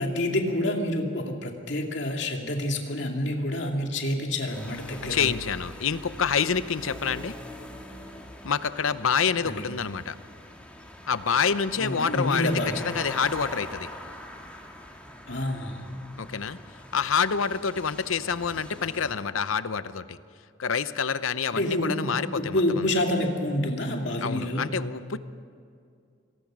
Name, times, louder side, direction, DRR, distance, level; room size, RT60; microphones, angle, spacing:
voice 1, 0.0-5.3 9.4-9.6 11.8-12.8 15.3-15.9 21.5-24.7, left 1 dB, 60° left, 2 dB, 2.5 m, -28 dB
sound 1, 4.5-19.1, left 1 dB, 5° left, 2.1 m, -43 dB
voice 2, 5.1-7.4 8.4-10.2 11.1-12.5 12.8-13.9 16.2-16.6 16.9-20.2 20.6-22.9 24.2-25.2, left 6 dB, 85° left, 14 dB, 0.8 m, -27 dB
26.5 x 19.0 x 6.2 m, 2.4 s
head